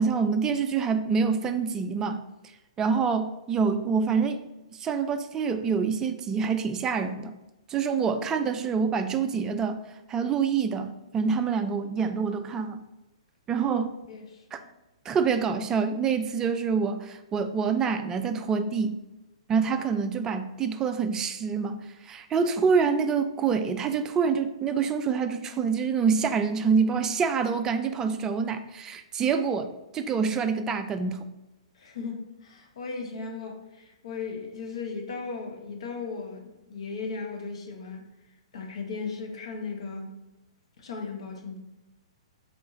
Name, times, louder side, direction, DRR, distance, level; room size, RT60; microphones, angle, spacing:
voice 1, 0.0-2.2 2.8-4.4 4.8-7.3 7.7-9.8 10.1-12.8 13.5-14.0 14.5-14.6 15.1-19.0 19.5-31.3, right 5 dB, 15° right, 8 dB, 0.3 m, -26 dB
voice 2, 14.1-14.7 31.7-38.0 38.5-40.1 40.8-41.6, left 4 dB, 60° left, 2 dB, 0.8 m, -37 dB
3.8 x 3.6 x 3.0 m, 1.0 s
figure-of-eight pair, 120°, 3 cm